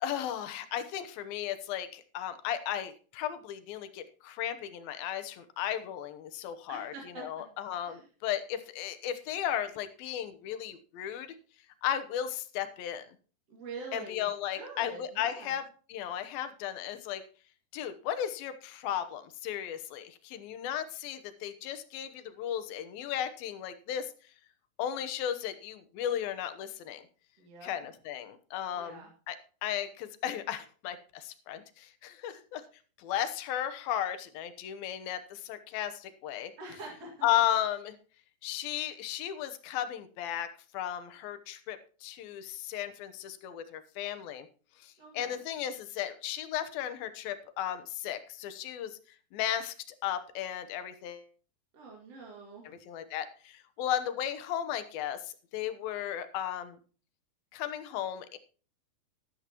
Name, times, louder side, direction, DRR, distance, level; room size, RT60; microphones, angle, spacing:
voice 1, 0.0-11.4 11.8-13.1 13.9-17.2 17.7-24.1 24.8-27.0 27.6-29.4 29.6-32.6 33.0-36.5 37.2-38.0 38.4-40.5 40.7-44.5 44.8-49.0 49.3-49.7 50.0-51.3 52.9-55.2 55.5-56.8 57.5-58.4, left 10 dB, 75° left, 10 dB, 2.7 m, -35 dB
voice 2, 6.7-7.4 7.8-8.0 13.5-14.3 14.5-15.5 27.4-27.7 28.7-29.1 36.6-37.3 45.0-45.4 51.7-52.8, right 3 dB, 45° right, -1 dB, 3.0 m, -45 dB
13.0 x 12.0 x 3.0 m, 0.38 s
omnidirectional pair, 4.3 m